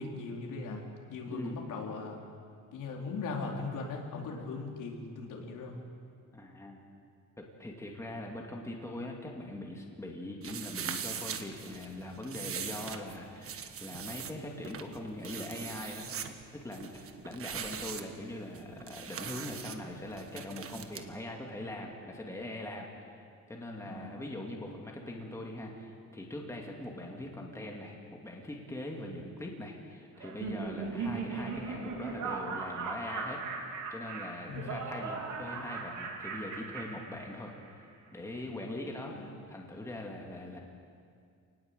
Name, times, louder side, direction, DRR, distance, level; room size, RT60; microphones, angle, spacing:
voice 1, 0.0-2.2 2.7-5.8 23.8-24.2 30.9-31.2 34.5-34.8 39.0-39.3, left 3 dB, 70° left, 0 dB, 4.0 m, -39 dB
voice 2, 1.3-1.6 6.3-6.8 7.4-16.2 16.5-22.9 23.5-37.5 38.1-40.6, left 1 dB, 10° left, 0 dB, 2.6 m, -42 dB
sound 1, 10.4-21.0, right 7 dB, 45° right, 1.5 m, -42 dB
Laughter, 30.2-37.7, right 4 dB, 65° right, 4.3 m, -38 dB
28.0 x 19.5 x 8.2 m, 2.3 s
cardioid pair, 160°, 32 cm